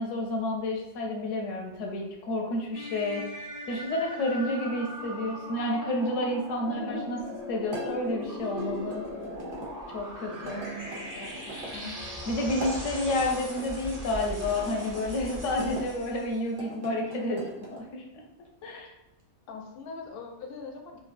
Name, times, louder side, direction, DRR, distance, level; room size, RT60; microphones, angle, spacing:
voice 1, 0.0-3.2 3.7-7.2 7.5-9.1 9.9-10.6 12.3-18.0 18.6-18.9, left 1 dB, 80° left, 0 dB, 1.0 m, -30 dB
sound 1, 2.7-16.5, left 1 dB, 30° right, 0.4 m, -39 dB
voice 2, 6.7-7.1 10.4-12.0 19.5-21.0, left 2 dB, 60° left, 2 dB, 0.7 m, -42 dB
sound 2, 7.7-9.7 10.4-11.8 12.5-13.7 14.5-15.9 16.5-17.8, right 1 dB, 85° right, 1.1 m, -42 dB
3.1 x 2.3 x 2.5 m, 0.89 s
omnidirectional pair, 1.3 m